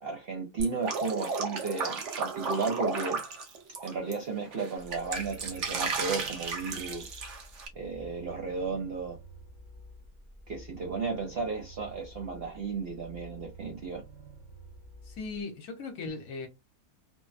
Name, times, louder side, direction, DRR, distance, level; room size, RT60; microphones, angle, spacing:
voice 1, 0.0-3.2 3.8-7.1 7.8-9.2 10.5-14.0, right 4 dB, 75° right, 0.5 m, -34 dB
Drip, 0.6-4.1 4.5-7.7, right 4 dB, 55° right, 0.9 m, -34 dB
sound 1, 4.8-15.4, right 2 dB, 30° right, 0.7 m, -50 dB
voice 2, 15.0-16.5, left 4 dB, 65° left, 1.1 m, -38 dB
3.3 x 2.1 x 2.4 m
omnidirectional pair, 1.7 m